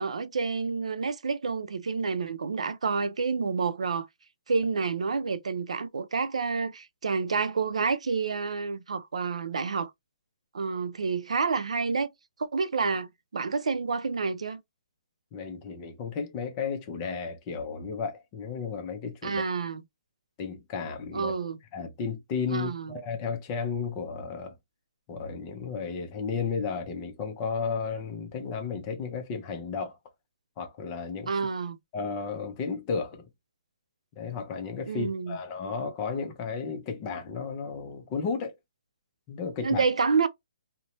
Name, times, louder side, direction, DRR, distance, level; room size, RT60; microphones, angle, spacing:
voice 1, 0.0-4.1 4.5-9.9 10.5-12.1 12.5-14.6 19.2-19.8 21.1-21.6 22.5-23.0 31.3-31.8 34.9-35.4 39.6-40.3, right 5 dB, 85° right, 0.4 m, -29 dB
voice 2, 15.3-19.4 20.4-21.3 21.7-24.6 25.1-30.0 30.6-31.3 31.9-33.3 34.2-38.5 39.3-39.8, left 5 dB, 20° left, 0.5 m, -33 dB
2.7 x 2.1 x 2.9 m
hypercardioid pair, 170°, 3 cm